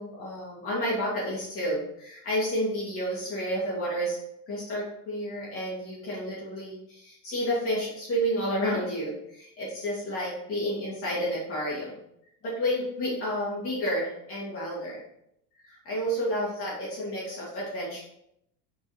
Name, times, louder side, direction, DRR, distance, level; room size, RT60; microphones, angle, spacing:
voice 1, 0.0-4.2 4.5-12.0 12.4-15.0 15.6-18.0, equal, 30° left, -7 dB, 2.4 m, -30 dB
5.7 x 5.6 x 5.0 m, 0.78 s
cardioid pair, 175°, 42 cm